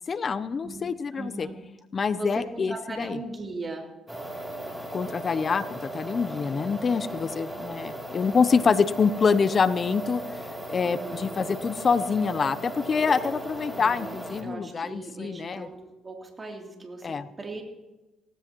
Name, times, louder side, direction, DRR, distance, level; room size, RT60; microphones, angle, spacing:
voice 1, 0.1-1.5 1.9-3.2 4.9-10.2 10.7-15.7 17.0-17.2, left 5 dB, 40° left, 15 dB, 0.6 m, -26 dB
voice 2, 1.1-1.5 2.2-3.9 10.8-11.3 13.7-15.8 16.0-17.6, right 2 dB, 25° right, 1 dB, 3.0 m, -38 dB
sound 1, 4.1-14.4, right 1 dB, 10° right, 2.9 m, -37 dB
18.0 x 15.5 x 3.0 m, 1.0 s
cardioid pair, 85°, 0 cm